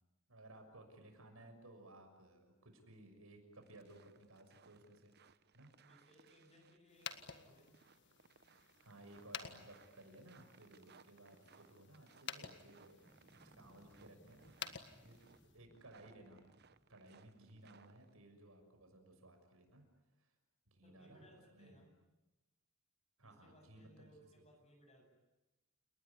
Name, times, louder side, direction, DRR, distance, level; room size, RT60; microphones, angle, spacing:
voice 1, 0.3-5.1 5.5-5.7 8.8-15.2 15.5-16.4 16.9-19.8 20.2-20.3 20.7-21.3 21.5-21.8 23.2-24.1, right 1 dB, 85° right, 5 dB, 6.4 m, -59 dB
sound 1, 3.6-18.1, right 5 dB, 50° right, 1.0 m, -67 dB
voice 2, 5.8-7.8 20.8-22.0 23.2-25.1, equal, 30° left, 3 dB, 7.8 m, -65 dB
sound 2, 6.9-15.6, left 7 dB, 55° left, 1.7 m, -52 dB
sound 3, 12.6-17.5, equal, ahead, 1.2 m, -68 dB
30.0 x 19.5 x 10.0 m, 1.0 s
head